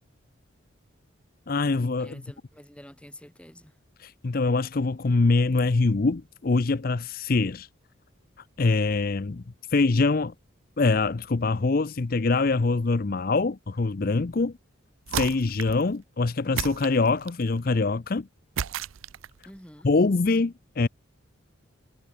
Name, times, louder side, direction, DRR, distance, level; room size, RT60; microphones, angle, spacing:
voice 1, 1.5-2.2 4.0-7.7 8.6-9.4 9.7-10.3 10.8-14.5 15.1-18.3 19.8-20.9, left 3 dB, 45° left, 0.5 m, -24 dB
voice 2, 2.0-3.8 19.5-19.9, left 1 dB, 5° left, 6.9 m, -48 dB
sound 1, 15.1-15.9 16.6-17.5 18.6-19.4, right 8 dB, 85° right, 0.5 m, -32 dB
head